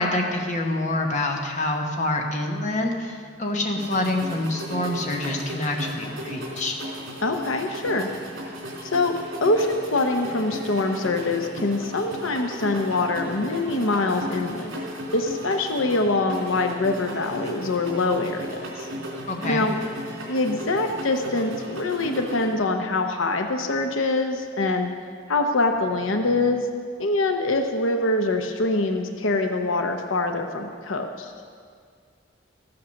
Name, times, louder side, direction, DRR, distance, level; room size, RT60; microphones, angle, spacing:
voice 1, 0.0-6.8 19.3-19.7, left 2 dB, 35° left, 1 dB, 1.1 m, -26 dB
sound 1, 3.7-22.5, equal, 70° right, 3.2 m, -36 dB
voice 2, 7.2-8.1 8.8-9.2 9.4-14.8 15.1-18.9 19.4-19.7 20.3-24.9 25.3-26.7 27.0-31.3, left 2 dB, 80° left, 5 dB, 0.9 m, -24 dB
14.5 x 8.7 x 6.4 m, 2.1 s
head